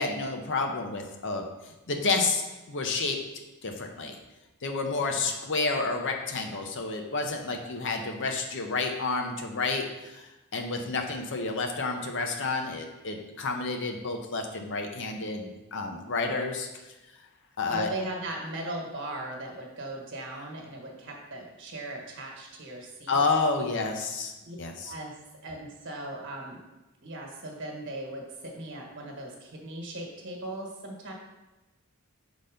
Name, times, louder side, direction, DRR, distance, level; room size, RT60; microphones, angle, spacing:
voice 1, 0.0-2.4 2.7-3.2 3.6-4.2 4.6-10.2 10.5-16.7 17.6-17.9 23.1-24.3 24.6-24.9, left 3 dB, 55° left, 3 dB, 0.8 m, -30 dB
voice 2, 17.7-23.2 24.4-24.6 24.8-25.1 25.4-26.6 27.0-31.1, right 1 dB, 55° right, 0 dB, 1.4 m, -38 dB
5.6 x 4.0 x 5.1 m, 1.1 s
head